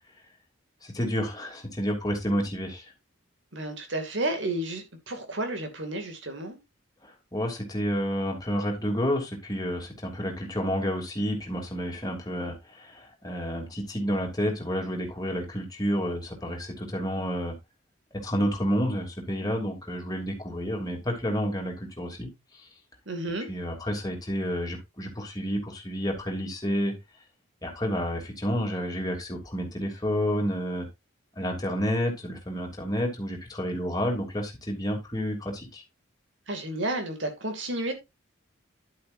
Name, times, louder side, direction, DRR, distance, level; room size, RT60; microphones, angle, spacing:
voice 1, 0.8-2.9 7.0-17.5 18.1-22.3 23.5-26.9 27.6-30.9 31.4-35.8, equal, 20° left, 3.0 m, -30 dB
voice 2, 3.5-6.6 23.1-23.5 36.5-37.9, right 1 dB, 60° right, 2.6 m, -31 dB
11.0 x 8.6 x 2.7 m
head